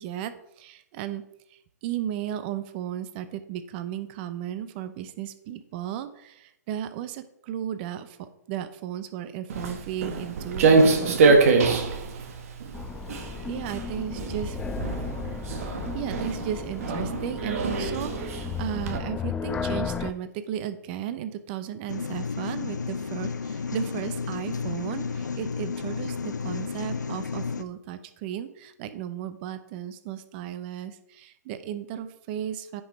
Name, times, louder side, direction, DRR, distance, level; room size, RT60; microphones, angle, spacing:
voice 1, 0.0-11.8 12.1-12.2 13.5-14.6 15.9-32.8, right 10 dB, 35° right, 11 dB, 0.7 m, -35 dB
Walk footsteps, 9.5-19.0, right 4 dB, 55° right, 1.5 m, -24 dB
sound 1, 12.7-20.1, left 6 dB, 10° left, 0.4 m, -34 dB
sound 2, 21.9-27.6, left 5 dB, 85° left, 0.7 m, -32 dB
9.6 x 5.5 x 4.3 m, 0.80 s
hypercardioid pair, 130°, 9 cm